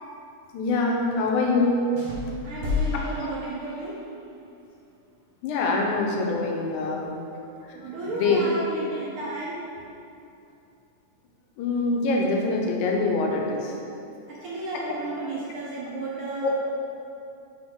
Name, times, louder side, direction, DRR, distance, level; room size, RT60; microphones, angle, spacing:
voice 1, 0.5-1.9 3.1-3.3 5.4-7.1 8.2-8.4 11.6-13.8 16.4-16.5, left 3 dB, 80° left, 0 dB, 2.2 m, -24 dB
sound 1, 1.9-4.1, left 4 dB, 65° right, 1.3 m, -31 dB
voice 2, 2.4-4.0 7.7-9.6 14.3-16.5, right 2 dB, 80° right, -7 dB, 1.2 m, -33 dB
7.0 x 4.3 x 3.6 m, 2.6 s
omnidirectional pair, 3.5 m